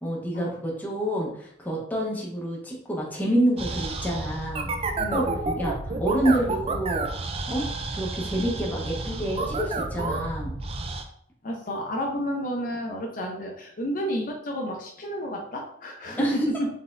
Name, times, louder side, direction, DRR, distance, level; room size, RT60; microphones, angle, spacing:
voice 1, 0.0-4.7 5.1-5.3 5.6-7.1 7.5-7.7 8.0-10.5 16.1-16.4, right 1 dB, 10° left, -3 dB, 0.9 m, -27 dB
sound 1, 3.6-11.0, right 3 dB, 35° right, 0.4 m, -30 dB
voice 2, 11.4-16.2, equal, 50° left, 0 dB, 0.7 m, -31 dB
4.0 x 3.5 x 2.5 m, 0.66 s
head